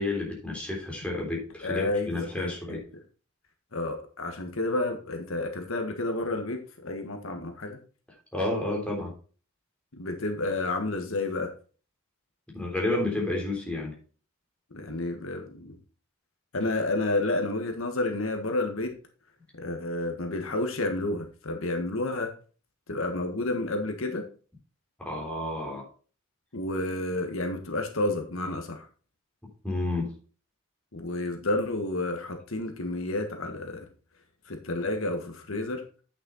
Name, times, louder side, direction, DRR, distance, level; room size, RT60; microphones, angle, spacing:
voice 1, 0.0-2.8 8.3-9.1 12.5-13.9 25.0-25.8 29.6-30.1, left 2 dB, 5° left, -2 dB, 3.4 m, -30 dB
voice 2, 1.6-2.8 3.7-7.8 9.9-11.5 14.7-15.8 16.5-18.9 19.5-22.3 22.9-24.2 26.5-28.9 30.9-33.9 34.4-35.8, left 2 dB, 75° left, 5 dB, 1.5 m, -30 dB
8.9 x 6.4 x 4.0 m, 0.38 s
head